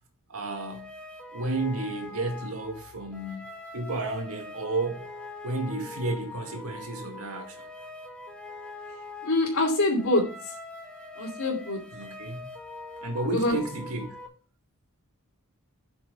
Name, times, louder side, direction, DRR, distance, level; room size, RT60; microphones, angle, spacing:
voice 1, 0.3-0.9 1.3-5.1 5.4-7.6 11.9-12.5 13.0-14.1, right 2 dB, 75° right, 2.0 m, -32 dB
sound 1, 0.5-14.3, left 2 dB, 5° left, 1.5 m, -43 dB
voice 2, 9.2-10.2 11.2-11.8 13.3-13.6, left 2 dB, 75° left, 2.4 m, -24 dB
8.2 x 6.1 x 5.5 m
head